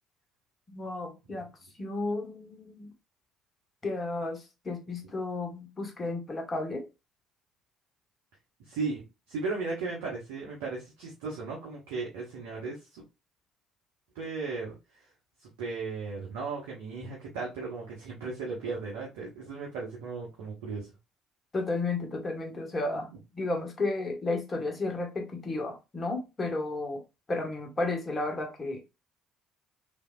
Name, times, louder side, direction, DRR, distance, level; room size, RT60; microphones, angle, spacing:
voice 1, 0.7-1.4 1.8-2.9 3.8-6.8 21.5-27.0 27.3-28.8, left 2 dB, 30° left, 1.2 m, -33 dB
voice 2, 8.6-13.0 14.1-14.7 15.4-20.9, right 4 dB, 70° right, 0.8 m, -36 dB
3.3 x 2.7 x 2.3 m
figure-of-eight pair, 50°, 0 cm